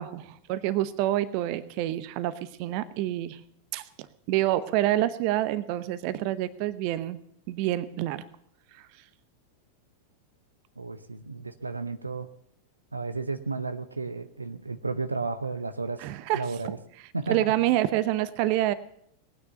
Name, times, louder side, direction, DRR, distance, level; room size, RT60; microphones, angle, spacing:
voice 1, 0.0-3.4 3.7-3.8 4.3-7.2 7.5-8.2 16.0-16.4 17.3-18.7, right 14 dB, 45° right, 16 dB, 0.9 m, -27 dB
voice 2, 10.8-12.3 12.9-16.1 16.3-16.8 17.1-17.5, right 3 dB, 80° right, 11 dB, 0.7 m, -33 dB
18.5 x 9.6 x 6.9 m, 0.67 s
figure-of-eight pair, 90°, 0 cm